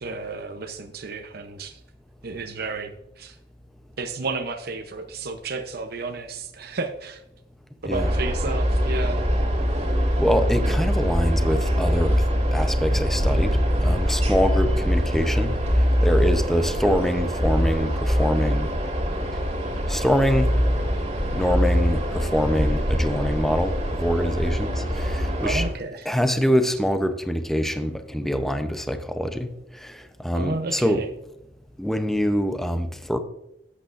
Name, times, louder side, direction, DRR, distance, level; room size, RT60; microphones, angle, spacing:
voice 1, 0.0-1.8 2.2-3.4 4.0-7.2 7.8-9.2 25.4-26.1 30.3-31.1, right 3 dB, 60° right, 5 dB, 0.8 m, -32 dB
sound 1, 7.9-25.7, equal, 35° right, 2.4 m, -23 dB
voice 2, 10.2-12.2 12.5-18.7 19.9-20.6 21.3-25.7 26.0-31.0 31.8-33.2, equal, ahead, 8 dB, 0.7 m, -24 dB
12.5 x 8.5 x 2.6 m, 0.85 s
head